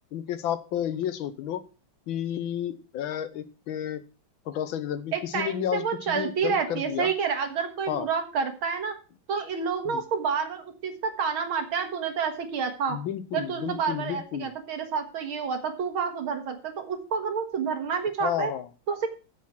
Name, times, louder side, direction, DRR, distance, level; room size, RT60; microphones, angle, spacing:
voice 1, 0.1-1.6 2.1-4.0 4.5-7.1 7.9-8.1 9.8-10.0 12.9-14.5 18.2-18.7, left 10 dB, 80° left, 13 dB, 1.6 m, -31 dB
voice 2, 5.1-8.9 9.3-13.0 13.3-18.5 18.9-19.1, right 6 dB, 90° right, 6 dB, 2.4 m, -29 dB
7.9 x 7.4 x 5.8 m, 0.35 s
omnidirectional pair, 2.2 m